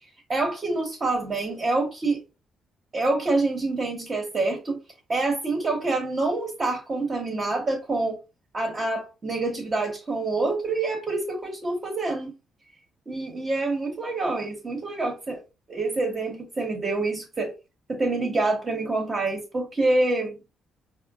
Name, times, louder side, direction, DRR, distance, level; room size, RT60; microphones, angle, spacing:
voice 1, 0.3-2.2 2.9-4.8 5.1-8.2 8.5-12.3 13.1-15.4 15.7-17.5 17.9-20.4, right 2 dB, 35° right, 1.0 m, -26 dB
4.3 x 2.1 x 2.3 m
cardioid pair, 90°, 0 cm